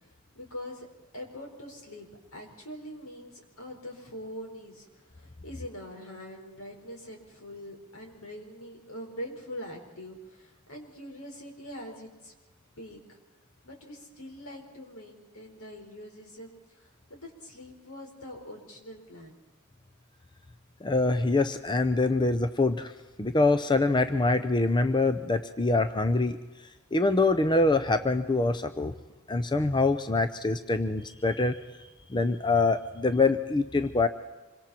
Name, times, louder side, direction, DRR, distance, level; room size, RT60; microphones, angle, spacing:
voice 1, 0.3-0.9 1.1-4.8 5.1-12.3 12.8-13.2 13.6-19.4, equal, 80° left, 2 dB, 4.8 m, -43 dB
voice 2, 20.8-22.9 23.2-26.4 26.9-28.9 29.3-31.6 32.1-34.1, left 3 dB, 20° left, 9 dB, 0.7 m, -25 dB
26.0 x 24.5 x 4.4 m, 1.2 s
head